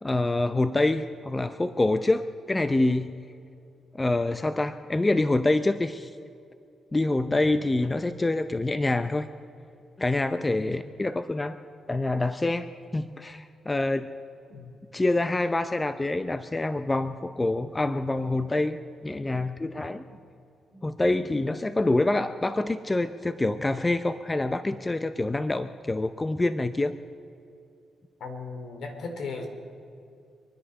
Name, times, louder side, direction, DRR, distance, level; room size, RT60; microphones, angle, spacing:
voice 1, 0.0-3.1 3.9-6.1 6.9-9.3 10.0-11.6 11.9-14.1 14.9-20.0 20.8-27.0, left 2 dB, 20° left, 11 dB, 0.6 m, -26 dB
voice 2, 28.2-29.5, left 4 dB, 70° left, 5 dB, 2.7 m, -37 dB
26.0 x 10.0 x 5.4 m, 2.6 s
cardioid pair, 80°, 0 cm